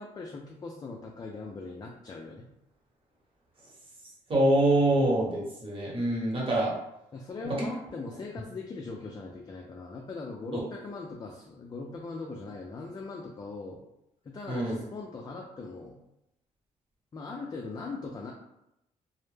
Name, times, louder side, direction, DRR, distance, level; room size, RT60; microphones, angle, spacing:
voice 1, 0.0-2.5 7.1-13.8 14.2-16.0 17.1-18.3, left 3 dB, 30° left, 0 dB, 0.3 m, -40 dB
voice 2, 4.3-6.7 14.5-14.8, right 1 dB, 40° right, -4 dB, 1.1 m, -25 dB
2.1 x 2.0 x 3.1 m, 0.85 s
cardioid pair, 85°, 14 cm